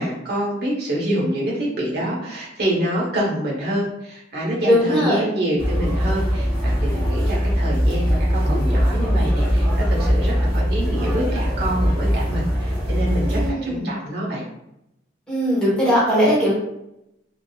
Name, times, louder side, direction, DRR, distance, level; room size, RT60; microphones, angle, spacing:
voice 1, 0.0-14.4, right 1 dB, 55° right, -4 dB, 1.2 m, -26 dB
voice 2, 4.7-5.2 13.3-14.0 15.3-16.5, equal, 5° left, -10 dB, 1.4 m, -19 dB
sound 1, 5.6-13.5, equal, 90° right, 1.2 m, -21 dB
3.7 x 2.6 x 2.4 m, 0.83 s
head